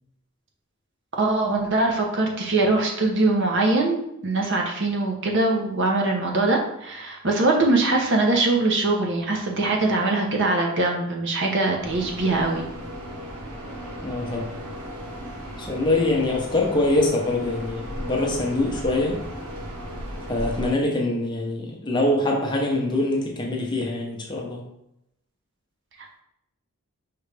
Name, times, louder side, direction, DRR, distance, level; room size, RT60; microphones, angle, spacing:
voice 1, 1.2-12.7, right 2 dB, 55° right, 1 dB, 0.8 m, -22 dB
sound 1, 11.8-20.7, equal, 75° right, 1.0 m, -35 dB
voice 2, 14.0-14.5 15.6-19.2 20.3-24.6, left 2 dB, 20° left, -1 dB, 0.7 m, -24 dB
5.0 x 3.1 x 3.3 m, 0.82 s
head